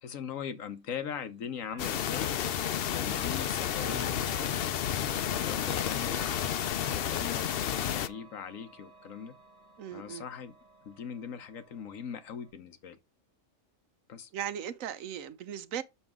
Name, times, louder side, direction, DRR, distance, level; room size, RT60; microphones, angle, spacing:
voice 1, 0.0-2.3 2.9-5.0 5.4-9.3 9.9-10.5 10.9-13.0 14.1-14.3, left 7 dB, 85° left, 1.3 m, -41 dB
Chime / Clock, 1.7-12.5, right 3 dB, 30° right, 1.7 m, -51 dB
sound 1, 1.8-8.1, left 10 dB, 60° left, 0.7 m, -31 dB
voice 2, 9.8-10.2 14.3-15.8, right 9 dB, 90° right, 1.1 m, -37 dB
7.1 x 6.4 x 3.6 m
omnidirectional pair, 1.3 m